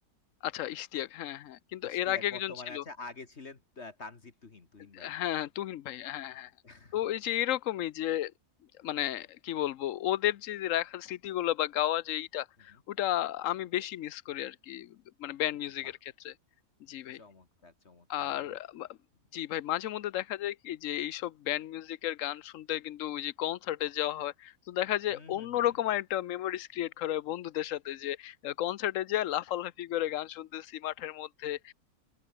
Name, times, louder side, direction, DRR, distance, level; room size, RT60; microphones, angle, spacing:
voice 1, 0.4-2.8 4.9-6.5 6.9-8.3 8.8-16.0 16.2-16.3 16.9-17.2 18.1-18.9 19.3-31.7, left 13 dB, 65° left, 1.0 m, -33 dB
voice 2, 1.8-5.1 6.6-7.0 12.6-12.8 15.8-15.9 17.1-18.6 25.1-25.6, left 3 dB, 45° left, 2.1 m, -48 dB
open air
omnidirectional pair, 1.7 m